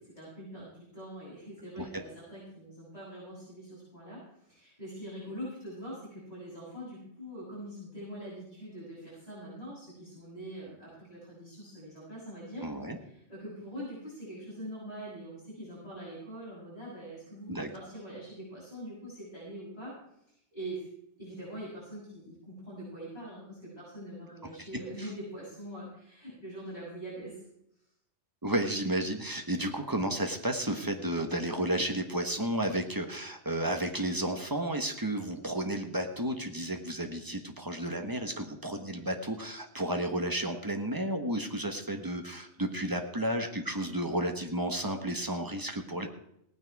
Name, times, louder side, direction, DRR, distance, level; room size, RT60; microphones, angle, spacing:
voice 1, 0.0-12.6 13.0-19.9 20.3-20.9 21.2-27.4, right 1 dB, 30° left, -10 dB, 7.7 m, -43 dB
voice 2, 12.6-13.0 17.5-17.7 28.4-46.1, right 1 dB, 15° right, 5 dB, 1.3 m, -32 dB
18.0 x 9.7 x 4.8 m, 0.77 s
omnidirectional pair, 1.3 m